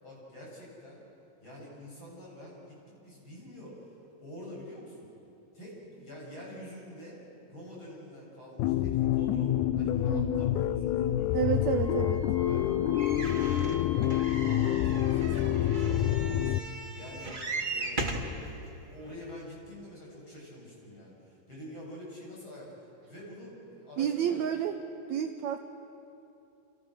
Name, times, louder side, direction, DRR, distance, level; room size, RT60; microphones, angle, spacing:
voice 1, 0.0-1.0 1.4-2.8 3.0-5.1 5.5-7.2 7.5-11.9 12.4-12.7 13.1-14.0 14.3-16.6 16.9-24.4, equal, 35° left, -4 dB, 8.4 m, -47 dB
sound 1, 8.6-16.6, left 12 dB, 75° left, 1.9 m, -27 dB
voice 2, 10.1-10.4 11.3-12.3 24.0-24.8 25.1-25.6, right 9 dB, 75° right, 7 dB, 1.7 m, -30 dB
Wind instrument woodwind instrument, 11.7-15.6, left 1 dB, ahead, 7.2 m, -46 dB
sound 2, 13.0-18.4 19.1-19.2 19.4-19.5, right 2 dB, 25° right, 1.0 m, -37 dB
28.5 x 28.0 x 6.5 m, 2.8 s
omnidirectional pair, 4.1 m